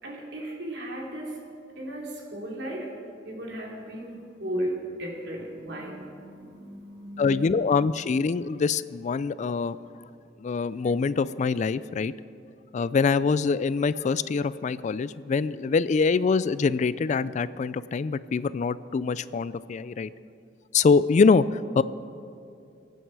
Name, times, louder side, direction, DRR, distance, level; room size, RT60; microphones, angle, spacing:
voice 1, 0.0-1.4 1.8-2.9 3.2-7.5, right 1 dB, 70° right, -2 dB, 3.1 m, -35 dB
voice 2, 7.2-9.8 10.4-12.1 12.7-20.1 20.7-21.8, left 4 dB, 40° left, 17 dB, 0.3 m, -24 dB
23.0 x 9.2 x 4.8 m, 2.6 s
head